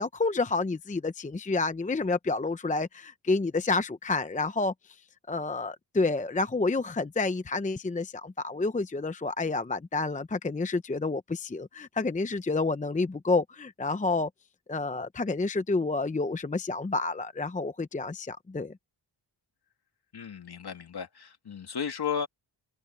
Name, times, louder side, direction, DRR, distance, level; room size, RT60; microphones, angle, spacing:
voice 1, 0.0-5.0 5.3-14.3 14.7-18.8, left 3 dB, 15° left, 0.6 m, -29 dB
voice 2, 20.1-22.3, left 7 dB, 50° left, 2.7 m, -34 dB
wide cardioid pair, 130°, 49 cm